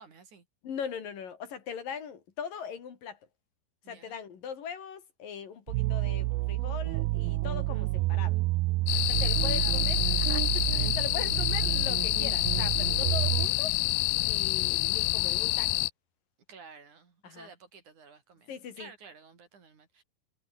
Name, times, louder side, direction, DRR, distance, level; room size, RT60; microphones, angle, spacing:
voice 1, 0.0-0.5 3.8-4.2 8.9-10.3 10.7-10.8 16.5-20.0, right 5 dB, 55° right, 5.2 m, -52 dB
voice 2, 0.6-3.2 3.9-8.4 9.1-13.8 14.2-15.7 17.2-17.5 18.5-18.9, left 7 dB, 65° left, 4.5 m, -40 dB
sound 1, 5.7-13.5, right 20 dB, 85° right, 2.5 m, -29 dB
sound 2, 8.9-15.9, left 19 dB, 90° left, 2.5 m, -28 dB
omnidirectional pair, 4.2 m